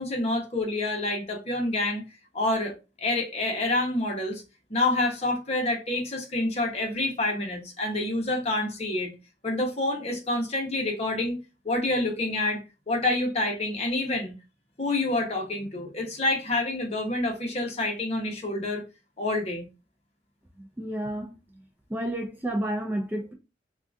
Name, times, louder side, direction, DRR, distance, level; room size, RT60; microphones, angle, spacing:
voice 1, 0.0-2.0 2.3-4.4 4.7-9.1 9.4-11.4 11.6-14.3 14.8-18.8 19.2-19.7, left 2 dB, 35° left, 0.8 m, -27 dB
voice 2, 20.8-21.3 21.9-23.3, right 1 dB, 10° right, 0.3 m, -30 dB
3.7 x 2.3 x 2.4 m
head